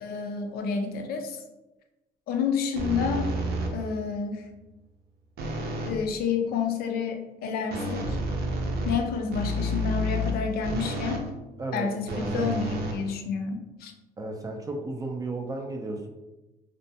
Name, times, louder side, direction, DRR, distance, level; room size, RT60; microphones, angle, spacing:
voice 1, 0.0-1.4 2.3-3.3 3.7-4.5 5.8-8.2 8.9-11.3 11.7-12.1 12.3-13.9, left 6 dB, 65° left, 5 dB, 0.4 m, -29 dB
sound 1, 2.8-4.0 5.4-6.0 7.7-11.3 12.1-13.6, equal, 70° right, 0.5 m, -30 dB
voice 2, 11.6-12.5 14.2-16.1, right 2 dB, 20° right, 2 dB, 0.3 m, -33 dB
2.4 x 2.1 x 2.6 m, 1.0 s
cardioid pair, 110°, 17 cm